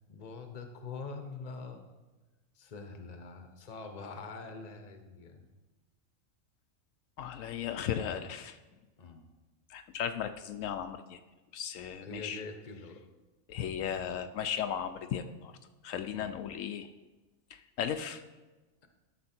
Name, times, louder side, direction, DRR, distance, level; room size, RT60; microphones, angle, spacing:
voice 1, 0.1-1.9 2.5-5.5 9.0-9.2 12.0-13.0 16.1-16.4, left 4 dB, 35° left, 6 dB, 0.9 m, -44 dB
voice 2, 7.2-8.6 9.7-11.2 11.5-12.4 13.5-15.5 15.8-16.9 17.5-18.2, left 8 dB, 80° left, 8 dB, 1.0 m, -36 dB
12.0 x 5.9 x 4.4 m, 1.2 s
omnidirectional pair, 1.4 m